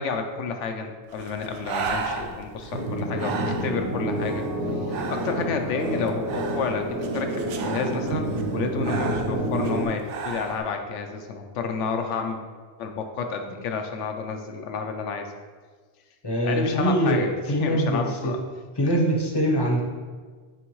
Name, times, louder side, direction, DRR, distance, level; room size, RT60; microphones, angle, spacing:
voice 1, 0.0-4.4 4.9-8.2 8.5-12.4 12.8-15.3 16.4-18.4, left 5 dB, 85° left, 5 dB, 1.0 m, -30 dB
Breathing, 1.1-10.6, right 5 dB, 85° right, 0.9 m, -35 dB
sound 1, 2.7-9.9, right 1 dB, 65° right, 1.1 m, -29 dB
voice 2, 16.2-18.3 18.8-19.8, equal, 25° left, -1 dB, 0.7 m, -23 dB
9.0 x 3.5 x 3.1 m, 1.5 s
omnidirectional pair, 1.2 m